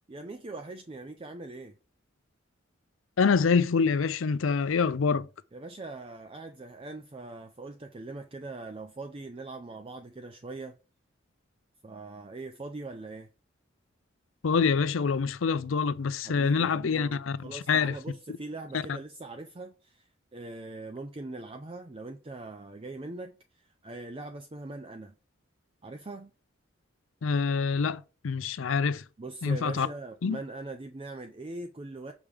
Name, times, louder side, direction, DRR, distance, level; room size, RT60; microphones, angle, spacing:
voice 1, 0.1-1.8 5.5-10.7 11.8-13.3 16.2-23.4 23.8-25.1 25.8-26.3 29.2-32.1, right 2 dB, 25° right, 0.5 m, -41 dB
voice 2, 3.2-5.3 14.4-17.9 18.7-18.8 27.2-29.0 29.4-29.9 30.2-30.4, left 5 dB, 80° left, 0.5 m, -26 dB
7.2 x 4.7 x 3.4 m
head